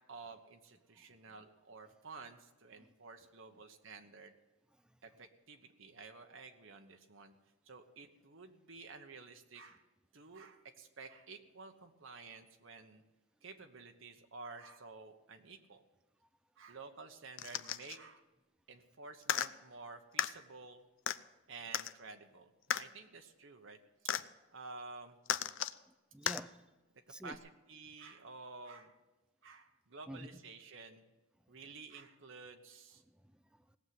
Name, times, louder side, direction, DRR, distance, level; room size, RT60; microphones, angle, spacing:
voice 1, 0.1-4.3 5.0-7.3 7.6-9.8 10.1-13.0 13.4-15.8 16.6-18.2 18.7-20.8 21.5-23.8 24.5-25.2 27.2-29.0 29.4-31.1 31.5-33.0, right 4 dB, 70° right, 5 dB, 1.1 m, -52 dB
sound 1, 17.4-18.0 19.2-19.5 20.2-20.3 21.1-21.2 21.7-21.9 22.7-22.8 24.1-24.2 25.3-25.8 26.3-26.4 27.3-27.4, left 10 dB, 65° left, 0.5 m, -35 dB
voice 2, 25.9-26.6 27.1-27.4 30.1-30.4 31.5-31.6 33.0-33.8, right 1 dB, 5° right, 13 dB, 0.5 m, -50 dB
17.5 x 7.3 x 9.5 m, 1.1 s
head